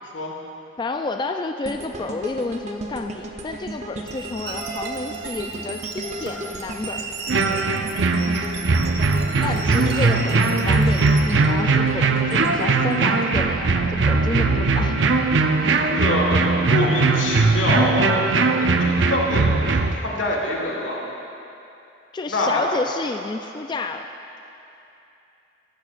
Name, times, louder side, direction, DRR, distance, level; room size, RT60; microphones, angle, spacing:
voice 1, 0.8-7.1 9.4-15.0 22.1-24.1, left 3 dB, 25° left, 5 dB, 0.3 m, -30 dB
sound 1, 1.6-13.8 14.2-14.4, right 2 dB, 40° right, 0.7 m, -36 dB
sound 2, 4.1-11.2, right 4 dB, 60° right, 1.2 m, -35 dB
sound 3, 7.3-19.9, right 3 dB, 75° right, 0.6 m, -20 dB
voice 2, 15.9-18.2 18.6-21.0 22.3-22.6, left 1 dB, 85° left, -1 dB, 1.7 m, -25 dB
14.5 x 12.5 x 2.5 m, 2.8 s
head